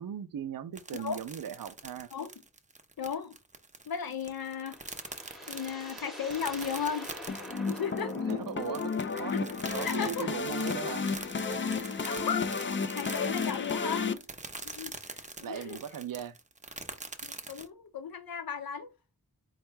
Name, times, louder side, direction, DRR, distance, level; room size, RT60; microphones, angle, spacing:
voice 1, 0.0-2.1 8.3-9.3 9.7-11.1 13.6-13.8 15.4-16.4, right 9 dB, 65° right, 0.5 m, -39 dB
sound 1, 0.7-17.7, right 3 dB, 20° right, 0.6 m, -44 dB
voice 2, 3.0-3.4 3.9-4.8 5.5-7.1 7.7-8.2 9.3-9.4 9.8-10.3 11.9-14.2 14.6-15.8 17.2-18.9, left 7 dB, 70° left, 0.7 m, -35 dB
sound 2, 4.3-9.4, left 1 dB, ahead, 0.9 m, -46 dB
sound 3, 7.3-14.1, left 5 dB, 35° left, 0.4 m, -32 dB
4.2 x 2.2 x 4.5 m
wide cardioid pair, 85°, 37 cm